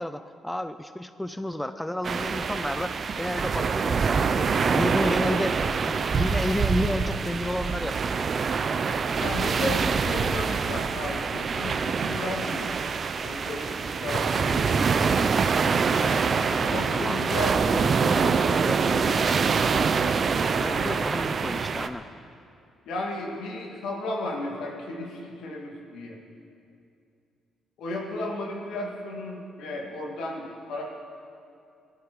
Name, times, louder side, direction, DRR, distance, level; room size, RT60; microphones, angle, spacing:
voice 1, 0.0-5.6 6.1-8.2 16.9-17.3 20.5-22.1, left 1 dB, 5° left, 10 dB, 0.5 m, -31 dB
sound 1, 2.0-21.9, right 5 dB, 45° right, 0.7 m, -25 dB
voice 2, 9.2-12.6 13.2-15.2 15.9-19.5 20.7-21.0 22.9-26.2 27.8-30.9, left 2 dB, 80° left, -1 dB, 2.4 m, -34 dB
18.5 x 12.5 x 4.8 m, 2.5 s
cardioid pair, 90°, 0 cm